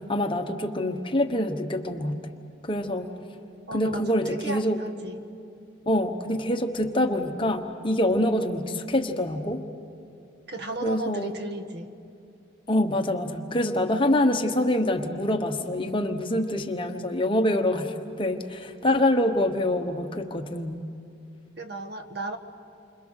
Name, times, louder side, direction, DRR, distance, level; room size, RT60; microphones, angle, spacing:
voice 1, 0.1-2.2 2.6-3.1 3.7-4.8 5.9-9.6 10.8-11.3 12.7-20.8, left 1 dB, 25° left, 5 dB, 1.1 m, -25 dB
voice 2, 3.7-5.3 10.5-11.9 21.6-22.4, right 2 dB, 60° right, 7 dB, 1.3 m, -35 dB
29.0 x 25.5 x 6.5 m, 2.5 s
head